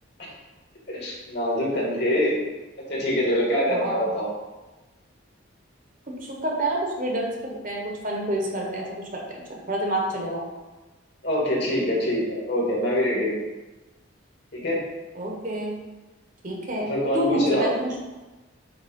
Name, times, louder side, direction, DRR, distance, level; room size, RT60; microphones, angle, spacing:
voice 1, 0.9-2.4 2.9-4.3 11.2-13.4 14.5-14.8 16.9-17.7, equal, 55° left, -3 dB, 2.1 m, -24 dB
voice 2, 3.7-4.1 6.1-10.4 15.1-15.7 16.4-16.9 17.1-17.9, right 1 dB, 45° right, 0 dB, 1.2 m, -28 dB
8.0 x 3.2 x 5.4 m, 1.1 s
head